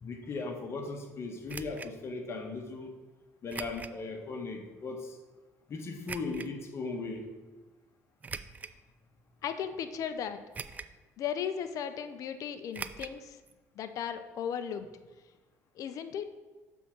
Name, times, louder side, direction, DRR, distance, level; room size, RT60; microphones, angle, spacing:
voice 1, 0.0-2.9 3.4-5.2 5.7-7.3, left 3 dB, 40° left, 3 dB, 1.3 m, -38 dB
sound 1, 1.5-1.9 3.5-4.0 4.5-4.6 6.1-6.5 8.2-8.8 9.4-9.5 10.5-11.0 11.3-11.4 12.7-13.2 13.5-13.6 13.8-13.9, right 5 dB, 25° right, 0.3 m, -41 dB
voice 2, 9.4-10.4 11.2-13.4 13.8-14.9 15.8-16.2, left 8 dB, 60° left, 9 dB, 0.6 m, -36 dB
6.9 x 3.6 x 5.9 m, 1.2 s
supercardioid pair, 90°, 6 cm